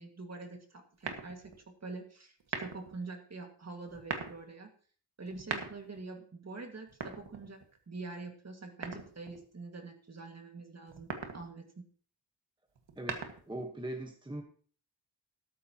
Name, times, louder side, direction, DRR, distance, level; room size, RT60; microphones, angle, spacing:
voice 1, 0.0-1.5 1.8-4.7 5.2-7.6 7.9-11.8, right 3 dB, 40° right, 4 dB, 2.0 m, -45 dB
sound 1, 1.0-1.6 2.4-3.0 3.9-4.4 5.3-6.0 6.9-7.8 8.8-9.4 10.9-11.5 12.8-13.6, right 5 dB, 90° right, 1.8 m, -40 dB
voice 2, 13.0-14.4, right 1 dB, 10° right, 2 dB, 1.2 m, -40 dB
13.0 x 13.0 x 2.9 m, 0.43 s
wide cardioid pair, 160°, 42 cm